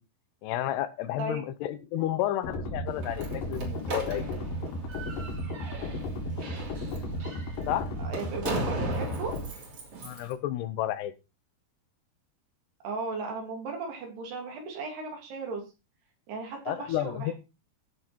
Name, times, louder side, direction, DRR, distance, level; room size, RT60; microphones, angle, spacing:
voice 1, 0.4-4.4 7.7-7.9 10.0-11.1 16.7-17.3, left 13 dB, 80° left, 13 dB, 2.9 m, -31 dB
sound 1, 2.4-9.4, left 1 dB, 60° left, 3.7 m, -34 dB
Slam, 2.9-10.3, right 1 dB, 40° right, 3.5 m, -38 dB
voice 2, 8.0-9.3 12.8-15.7 16.3-17.3, right 4 dB, 75° right, 2 dB, 5.1 m, -36 dB
15.0 x 6.4 x 4.4 m, 0.28 s
omnidirectional pair, 4.8 m